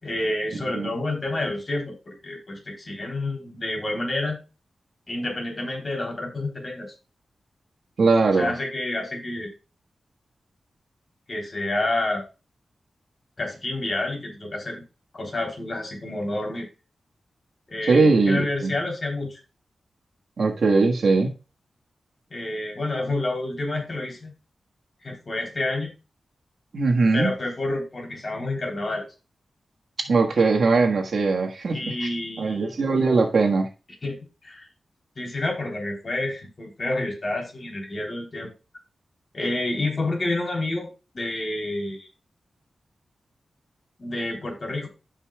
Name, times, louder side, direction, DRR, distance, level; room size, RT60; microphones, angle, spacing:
voice 1, 0.0-4.4 5.1-6.9 8.3-9.5 11.3-12.2 13.4-14.8 15.1-16.7 17.7-19.4 22.3-24.3 25.0-25.9 27.1-29.0 31.7-32.8 34.0-34.6 35.1-38.5 39.3-40.9 41.1-42.1 44.0-44.9, left 2 dB, 40° left, 0 dB, 3.4 m, -29 dB
voice 2, 8.0-8.5 17.9-18.7 20.4-21.4 26.7-27.3 30.0-32.0 32.4-33.7, right 3 dB, 70° right, 2 dB, 1.5 m, -20 dB
15.0 x 5.5 x 2.3 m, 0.31 s
wide cardioid pair, 105°, 0 cm